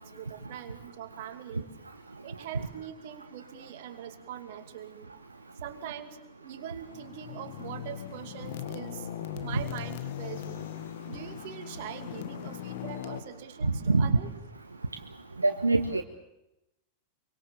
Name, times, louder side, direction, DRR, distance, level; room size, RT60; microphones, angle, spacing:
voice 1, 0.0-1.7 2.2-5.1 5.6-9.1 9.4-10.7 11.1-14.3, right 10 dB, 50° right, 8 dB, 2.6 m, -43 dB
sound 1, 6.9-13.2, left 11 dB, 55° left, 1.8 m, -39 dB
voice 2, 13.6-14.2 15.4-16.0, right 3 dB, 80° right, 6 dB, 1.2 m, -24 dB
25.0 x 24.0 x 7.0 m, 0.89 s
figure-of-eight pair, 90°, 0 cm